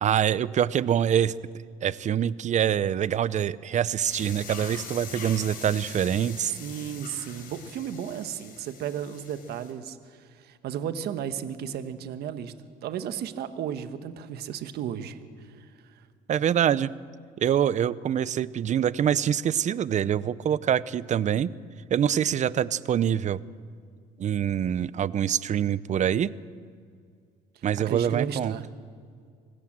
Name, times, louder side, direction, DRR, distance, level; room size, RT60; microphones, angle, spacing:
voice 1, 0.0-1.3 1.8-6.5 16.3-16.9 17.4-21.5 21.9-23.4 24.2-26.3 27.6-28.5, right 9 dB, 45° right, 19 dB, 0.6 m, -25 dB
sound 1, 4.0-9.7, left 6 dB, 55° left, 4.1 m, -43 dB
voice 2, 6.6-12.5 12.8-15.2 15.6-15.7 27.8-28.7, right 9 dB, 70° right, 10 dB, 1.4 m, -34 dB
25.0 x 15.5 x 7.5 m, 2.2 s
cardioid pair, 110°, 17 cm